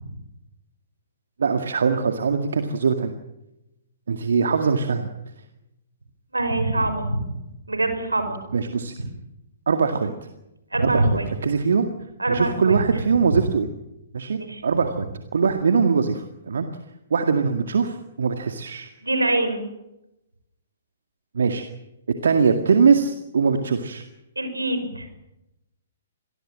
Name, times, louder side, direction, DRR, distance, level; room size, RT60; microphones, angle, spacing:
voice 1, 1.4-3.1 4.1-5.1 8.5-8.9 9.7-10.1 10.8-11.9 12.3-13.7 14.1-16.7 17.1-18.9 21.3-21.6 22.2-24.0, right 5 dB, 70° right, 6 dB, 2.1 m, -22 dB
voice 2, 6.3-7.3 7.7-8.4 10.7-11.3 12.2-12.8 13.3-13.4 14.4-14.6 19.0-19.6 24.4-25.1, right 2 dB, 90° right, 8 dB, 6.0 m, -24 dB
26.0 x 20.0 x 7.6 m, 0.90 s
figure-of-eight pair, 125°, 0 cm